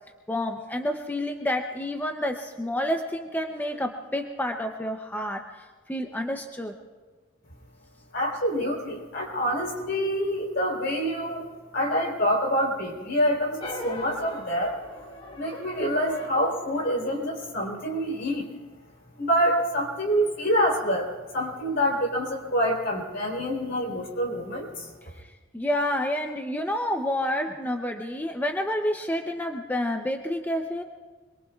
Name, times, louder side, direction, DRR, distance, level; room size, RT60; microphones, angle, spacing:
voice 1, 0.3-6.7 25.2-25.3 25.5-30.8, left 1 dB, 10° left, 4 dB, 0.6 m, -29 dB
voice 2, 8.1-11.5 11.7-14.7 15.4-18.5 19.2-24.9, equal, 60° left, -1 dB, 3.7 m, -26 dB
sound 1, 13.6-18.2, left 1 dB, 25° left, 1.2 m, -41 dB
25.5 x 22.0 x 2.4 m, 1.4 s
head